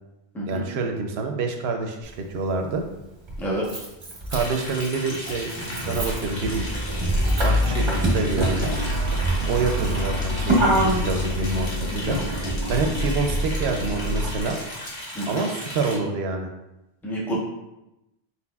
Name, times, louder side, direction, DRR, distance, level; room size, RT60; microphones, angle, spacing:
voice 1, 0.5-2.8 4.3-6.6 7.4-8.7 9.5-12.2 12.7-14.6 15.3-16.5, right 3 dB, 85° right, 4 dB, 0.9 m, -27 dB
Motor vehicle (road), 2.0-2.1 3.3-14.4, right 1 dB, 30° right, 0.8 m, -25 dB
Liquid, 4.3-15.9, left 1 dB, 90° left, 1.4 m, -36 dB
Boiling, 5.6-12.9, left 1 dB, 50° left, 1.3 m, -37 dB
voice 2, 17.0-17.4, right 1 dB, ahead, -5 dB, 0.8 m, -28 dB
4.4 x 4.2 x 2.3 m, 0.93 s
omnidirectional pair, 1.0 m